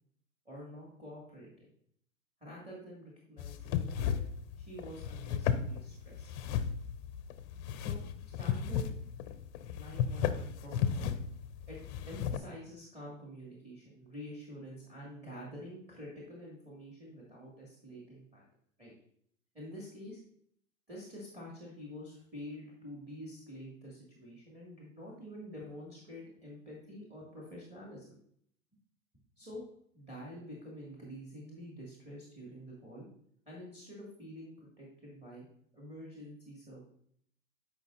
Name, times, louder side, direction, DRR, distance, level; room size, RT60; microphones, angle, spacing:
voice 1, 0.5-1.7 2.4-4.1 4.6-6.3 7.8-8.0 8.4-8.9 9.7-11.2 11.7-11.8 12.1-18.5 18.8-18.9 19.5-20.2 20.9-28.2 29.4-29.6 29.9-33.1 33.5-35.5 35.7-36.8, equal, 15° right, -5 dB, 2.1 m, -47 dB
sound 1, 3.4-12.4, left 8 dB, 35° left, 0.6 m, -35 dB
12.0 x 5.0 x 2.6 m, 0.65 s
hypercardioid pair, 120°, 40 cm